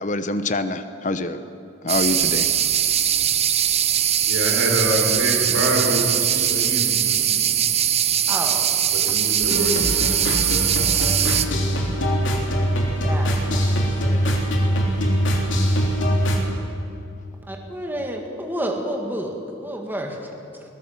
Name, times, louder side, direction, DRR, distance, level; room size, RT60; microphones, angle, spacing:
voice 1, 0.0-1.4 1.8-2.5, left 2 dB, 40° left, 11 dB, 0.9 m, -25 dB
sound 1, 1.9-11.4, right 9 dB, 35° right, 0.7 m, -21 dB
voice 2, 4.2-7.5 8.9-10.9, right 1 dB, 85° right, 0 dB, 5.0 m, -26 dB
voice 3, 8.3-8.8 10.9-11.4 13.0-14.6 17.5-19.3 19.6-20.6, right 1 dB, 10° right, 1 dB, 2.0 m, -31 dB
sound 2, 9.4-16.4, equal, 70° left, 3.2 m, -22 dB
22.0 x 17.5 x 7.4 m, 2.7 s
head